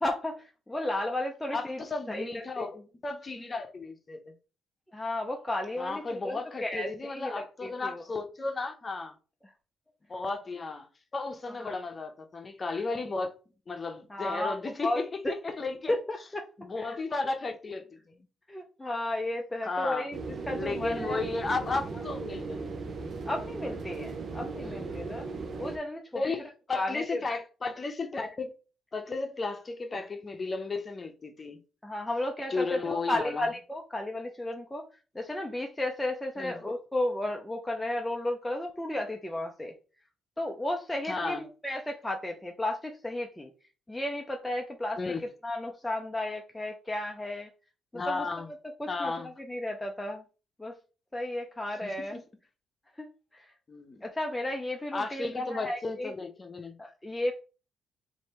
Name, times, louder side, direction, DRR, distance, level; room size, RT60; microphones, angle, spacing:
voice 1, 0.0-1.8 2.1-2.7 4.9-8.0 11.6-11.7 14.1-14.5 14.8-15.0 15.5-15.6 15.9-16.4 16.8-17.0 18.5-20.2 20.5-21.2 23.3-25.2 25.6-26.2 26.7-27.2 31.8-34.8 35.1-39.7 40.4-43.5 43.9-45.0 45.4-47.5 47.9-48.3 48.8-49.1 49.4-50.2 50.6-50.8 51.1-52.2 53.0-53.5 54.0-56.1 56.8-57.3, left 1 dB, 10° left, 0.6 m, -33 dB
voice 2, 1.5-4.3 5.8-9.1 10.1-10.9 11.1-13.3 13.7-15.1 15.4-16.0 16.6-18.3 19.6-20.1 20.6-22.6 24.6-25.0 26.1-28.5 28.9-31.6 32.5-33.5 36.4-36.6 41.0-41.4 45.0-45.2 47.9-48.5 48.9-49.3 51.8-52.2 53.7-54.0 54.9-56.8, left 3 dB, 30° left, 0.9 m, -34 dB
sound 1, 20.1-25.8, right 4 dB, 50° right, 0.7 m, -37 dB
3.1 x 2.7 x 4.4 m
cardioid pair, 90°, 0 cm